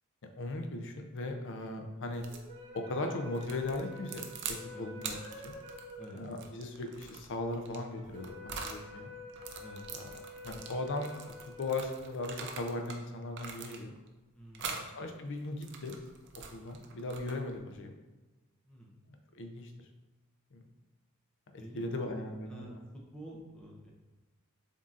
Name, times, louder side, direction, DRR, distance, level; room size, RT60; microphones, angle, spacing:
voice 1, 0.4-2.2 2.7-5.2 5.4-5.5 6.1-9.1 9.9-10.2 10.4-11.1 11.6-13.9 14.6-15.9 16.5-17.9 19.3-19.7 20.5-20.6 21.5-22.8, left 2 dB, 60° left, 5 dB, 0.5 m, -38 dB
sound 1, 2.1-2.5 3.3-4.6 5.0-8.8 9.3-13.0 13.3-14.1 14.5-14.9 15.4-17.6, right 6 dB, 55° right, 0.5 m, -44 dB
sound 2, 2.3-12.7, left 2 dB, 85° right, 1.5 m, -49 dB
voice 2, 14.3-14.8 18.7-18.9 21.6-22.1 22.5-22.8 23.1-23.9, equal, 5° left, -4 dB, 0.6 m, -49 dB
7.2 x 2.7 x 2.5 m, 1.2 s
head